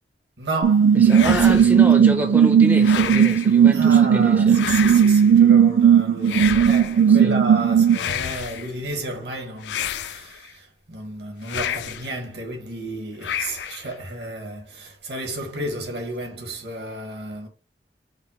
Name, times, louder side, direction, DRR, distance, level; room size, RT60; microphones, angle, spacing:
voice 1, 0.4-2.2 3.7-17.5, right 1 dB, 65° right, 1.2 m, -32 dB
sound 1, 0.6-8.0, right 8 dB, 90° right, 0.4 m, -16 dB
voice 2, 0.9-4.6 7.1-7.4, right 1 dB, 10° right, 0.4 m, -28 dB
sound 2, 1.1-1.9 2.8-3.5 4.5-5.3 6.2-7.0 7.9-8.7 9.6-10.5 11.4-12.1 13.2-13.9, left 9 dB, 70° left, 0.3 m, -30 dB
5.1 x 2.0 x 4.2 m
head